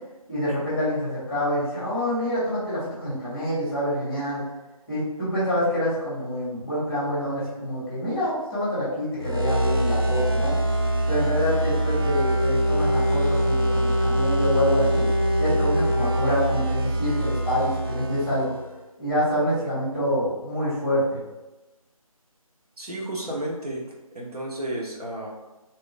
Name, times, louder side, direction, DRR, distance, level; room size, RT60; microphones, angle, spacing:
voice 1, 0.3-4.4 4.9-10.6 11.1-15.1 15.4-18.5 19.0-21.2, equal, ahead, -11 dB, 1.2 m, -26 dB
sound 1, 9.2-18.7, right 1 dB, 40° right, 0.4 m, -23 dB
voice 2, 22.8-23.8 24.1-25.3, right 1 dB, 90° right, -3 dB, 1.1 m, -32 dB
2.9 x 2.4 x 3.2 m, 1.1 s
figure-of-eight pair, 165°, 19 cm